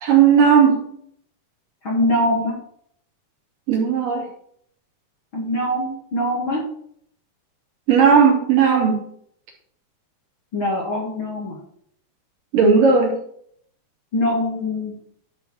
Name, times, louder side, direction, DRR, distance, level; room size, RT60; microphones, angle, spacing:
voice 1, 0.0-0.8 3.7-4.3 7.9-9.0 12.5-13.2, right 6 dB, 60° right, -2 dB, 4.2 m, -15 dB
voice 2, 1.8-2.5 5.3-6.6 10.5-11.6 14.1-14.9, left 1 dB, 35° left, -3 dB, 2.6 m, -23 dB
12.0 x 5.1 x 6.5 m, 0.66 s
omnidirectional pair, 4.6 m